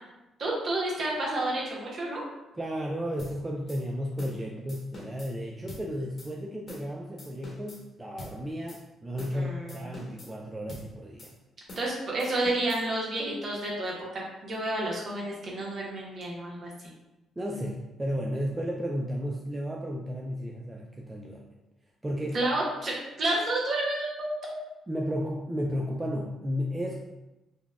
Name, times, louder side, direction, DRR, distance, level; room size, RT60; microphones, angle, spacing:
voice 1, 0.4-2.2 9.3-9.9 11.8-16.7 22.3-24.5, right 1 dB, 50° right, -4 dB, 1.0 m, -30 dB
voice 2, 2.6-11.3 17.4-21.5 22.0-22.4 24.9-27.0, equal, 15° right, -2 dB, 0.3 m, -33 dB
sound 1, 3.2-3.3 3.7-3.8 4.2-4.4 4.7-5.3 5.7-5.8 6.2-6.3 6.7-6.9 7.2-7.8 8.2-8.3 8.7-8.8 9.2-9.4 9.7-10.3 10.7-10.9 11.2-11.3 11.7-11.9 12.2-12.8, left 1 dB, 45° left, 1.0 m, -44 dB
3.9 x 2.2 x 2.3 m, 0.97 s
cardioid pair, 90°, 0 cm